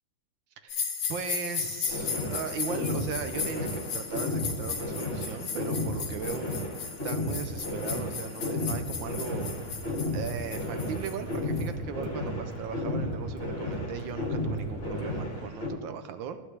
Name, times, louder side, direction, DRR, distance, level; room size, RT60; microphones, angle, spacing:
sound 1, 0.7-11.7, left 6 dB, 75° left, 2.0 m, -36 dB
voice 1, 1.1-6.5 7.0-9.5 10.1-16.4, right 7 dB, 70° right, 9 dB, 1.3 m, -38 dB
sound 2, 1.9-15.7, left 1 dB, 30° left, 1.8 m, -33 dB
sound 3, 9.1-15.4, right 2 dB, 55° right, 1.6 m, -42 dB
14.5 x 8.9 x 3.3 m, 1.4 s
omnidirectional pair, 2.4 m